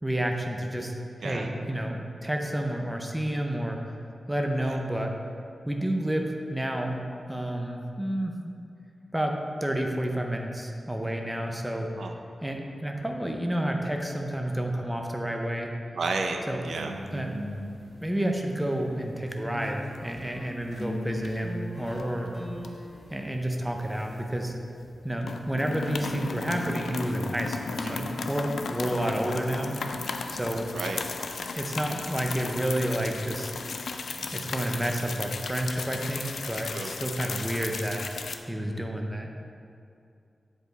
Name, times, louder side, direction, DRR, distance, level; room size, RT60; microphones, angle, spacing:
voice 1, 0.0-3.8 4.3-5.1 5.7-7.0 7.3-8.3 9.1-11.9 12.4-15.7 16.5-16.6 17.1-17.3 18.0-22.3 23.1-24.5 25.0-29.8 30.3-30.7 31.6-33.5 34.3-38.1 38.5-39.3, right 1 dB, 5° right, 2 dB, 0.5 m, -30 dB
voice 2, 15.9-16.9 27.8-28.1 30.7-31.0 36.7-36.9, right 3 dB, 80° right, 4 dB, 0.5 m, -32 dB
sound 1, 16.7-19.0 19.3-23.2, left 1 dB, 30° left, 1.6 m, -39 dB
sound 2, 19.7-20.4 20.6-20.9 21.2-22.0 22.6-24.5 24.8-25.0 25.2-38.4, left 4 dB, 85° left, 0.4 m, -35 dB
7.9 x 5.0 x 3.9 m, 2.5 s
wide cardioid pair, 150°, 0 cm